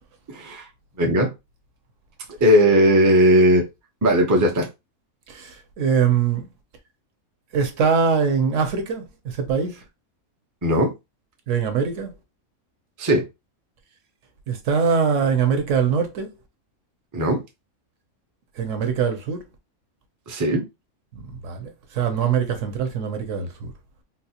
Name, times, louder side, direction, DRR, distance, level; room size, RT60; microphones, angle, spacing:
voice 1, 0.3-0.6 1.0-1.3 2.4-3.6 4.0-4.7 10.6-10.9 13.0-13.2 17.1-17.4 20.3-20.7, equal, 30° right, 0.3 m, -17 dB
voice 2, 5.3-6.5 7.5-9.8 11.5-12.1 14.5-16.3 18.6-19.4 21.4-23.7, right 6 dB, 65° right, 1.0 m, -22 dB
3.8 x 2.4 x 2.8 m
omnidirectional pair, 1.5 m